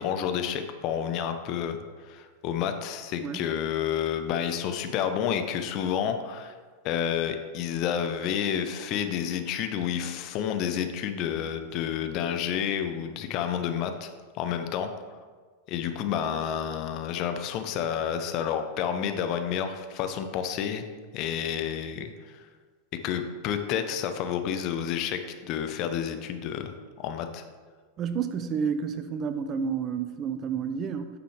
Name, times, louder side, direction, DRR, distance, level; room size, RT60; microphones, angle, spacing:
voice 1, 0.0-6.5 6.8-14.1 14.3-14.9 15.7-20.8 21.1-22.5 23.0-26.7 27.0-27.4, left 8 dB, 40° left, 7 dB, 0.6 m, -30 dB
voice 2, 28.0-31.1, right 6 dB, 30° right, 10 dB, 0.5 m, -30 dB
9.1 x 6.0 x 3.2 m, 1.5 s
figure-of-eight pair, 90°, 0 cm